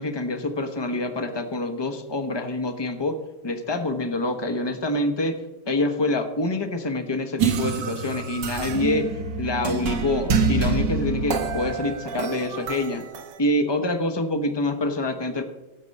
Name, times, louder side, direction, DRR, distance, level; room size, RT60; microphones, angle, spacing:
voice 1, 0.0-3.2 3.4-5.4 5.7-13.1 13.4-15.4, left 2 dB, 25° left, 8 dB, 0.6 m, -26 dB
sound 1, 7.4-13.4, right 5 dB, 65° right, 1.7 m, -26 dB
17.0 x 7.6 x 5.4 m, 1.1 s
omnidirectional pair, 2.1 m